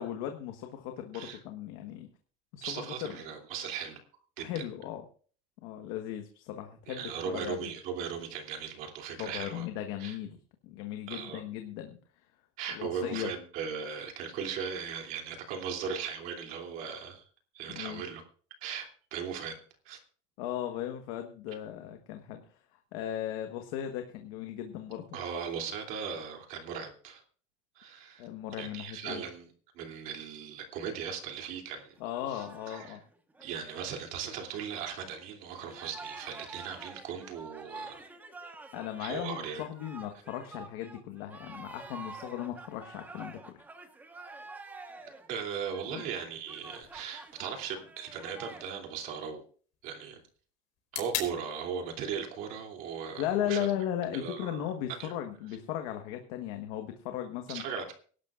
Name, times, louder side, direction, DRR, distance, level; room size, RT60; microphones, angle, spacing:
voice 1, 0.0-2.1 2.5-3.1 4.4-5.0 5.6-7.7 9.2-10.4 10.6-12.0 12.7-13.3 17.7-18.0 20.4-22.4 22.9-25.0 28.2-29.2 32.0-33.0 38.7-43.6 45.9-46.0 53.2-57.6, left 11 dB, 80° left, 5 dB, 1.3 m, -37 dB
voice 2, 2.6-4.0 4.4-4.6 6.9-9.7 10.0-10.2 11.1-11.4 12.6-17.2 17.5-18.2 18.6-19.6 19.8-20.0 25.1-27.2 27.7-28.3 28.6-31.9 32.3-33.0 33.4-38.0 39.0-39.6 45.3-49.4 49.8-50.2 50.9-53.7 54.1-54.6 55.0-55.1 57.5-57.9, right 7 dB, 55° right, 3 dB, 2.9 m, -38 dB
sound 1, 32.0-35.2 35.5-48.7, right 3 dB, 10° right, 1.2 m, -48 dB
sound 2, 46.8-54.8, left 8 dB, 45° left, 4.0 m, -45 dB
23.5 x 12.0 x 2.5 m, 0.43 s
cardioid pair, 165°, 17 cm